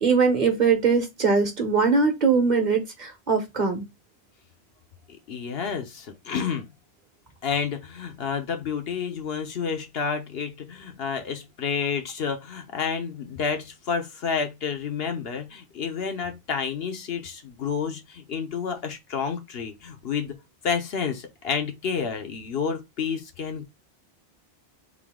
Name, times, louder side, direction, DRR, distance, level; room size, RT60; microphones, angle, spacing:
voice 1, 0.0-3.8, right 5 dB, 45° right, 1.2 m, -21 dB
voice 2, 5.3-6.7 7.4-20.3 20.6-23.6, left 6 dB, 70° left, 1.0 m, -30 dB
3.8 x 2.7 x 3.5 m
omnidirectional pair, 1.1 m